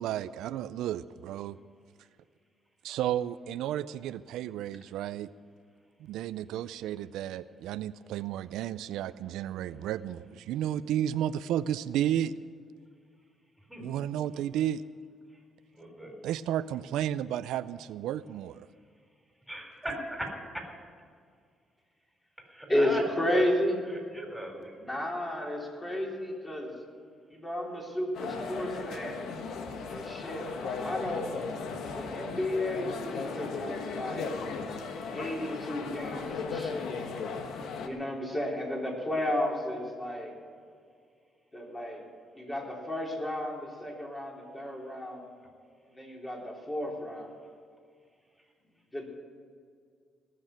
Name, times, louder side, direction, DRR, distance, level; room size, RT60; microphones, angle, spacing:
voice 1, 0.0-1.6 2.8-5.3 6.0-12.3 13.8-14.8 16.2-18.7, right 11 dB, 90° right, 15 dB, 0.4 m, -32 dB
voice 2, 15.8-16.2 19.5-20.6 22.5-23.0 24.1-25.0, right 1 dB, 5° right, 1 dB, 4.0 m, -38 dB
voice 3, 22.7-23.9 24.8-26.7 27.3-29.2 29.9-31.3 32.0-34.3 35.1-37.0 37.8-40.3 41.5-42.0 42.3-45.3 45.9-47.3 48.9-49.1, left 1 dB, 15° left, -2 dB, 3.7 m, -32 dB
sound 1, 28.1-37.9, left 5 dB, 80° left, 1.3 m, -36 dB
18.5 x 6.5 x 9.1 m, 2.1 s
cardioid pair, 90°, 0 cm